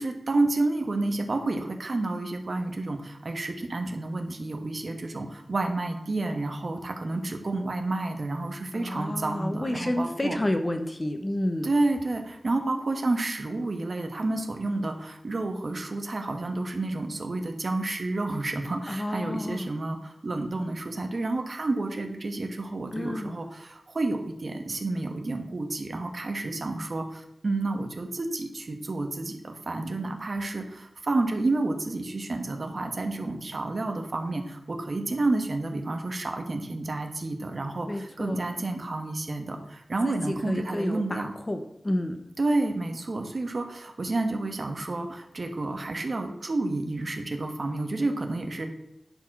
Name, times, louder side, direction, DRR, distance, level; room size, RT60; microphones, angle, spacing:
voice 1, 0.0-10.4 11.6-41.3 42.4-48.7, right 2 dB, 50° right, 5 dB, 1.3 m, -30 dB
voice 2, 8.7-11.7 18.9-19.7 22.9-23.4 37.9-38.4 40.0-41.2 41.5-42.2, left 1 dB, 25° left, 6 dB, 1.0 m, -30 dB
10.5 x 4.5 x 6.1 m, 0.82 s
wide cardioid pair, 100°, 0 cm